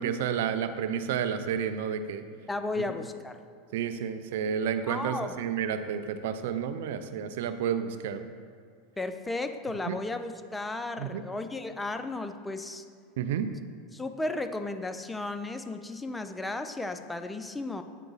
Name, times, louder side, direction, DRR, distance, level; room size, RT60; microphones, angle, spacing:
voice 1, 0.0-2.2 3.7-8.3 9.9-10.0 11.0-11.2 13.2-13.5, right 8 dB, 75° right, 10 dB, 0.4 m, -30 dB
voice 2, 2.5-3.4 4.9-5.3 9.0-12.8 13.9-17.8, left 2 dB, 10° left, 8 dB, 0.4 m, -34 dB
8.1 x 4.5 x 4.0 m, 2.2 s
hypercardioid pair, 110°, 0 cm